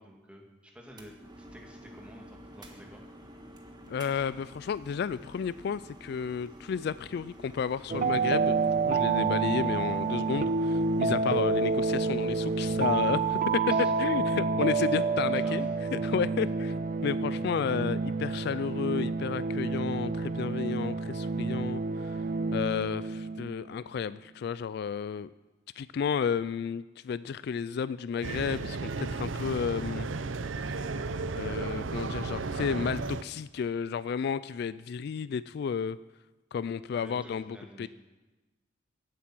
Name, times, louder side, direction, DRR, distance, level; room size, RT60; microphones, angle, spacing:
voice 1, 0.0-3.0 13.7-13.9 14.9-15.5 37.0-37.9, equal, 5° right, 0 dB, 2.0 m, -50 dB
sound 1, 0.9-13.6, right 1 dB, 20° right, 1.5 m, -50 dB
voice 2, 3.9-16.7 17.0-22.2 22.5-25.3 25.8-30.1 31.4-36.0 36.5-37.9, left 6 dB, 60° left, 16 dB, 0.3 m, -32 dB
sound 2, 7.9-23.6, right 4 dB, 45° right, 0.5 m, -29 dB
sound 3, 28.2-33.2, right 3 dB, 85° right, 0.6 m, -34 dB
15.5 x 8.4 x 6.0 m, 1.2 s
head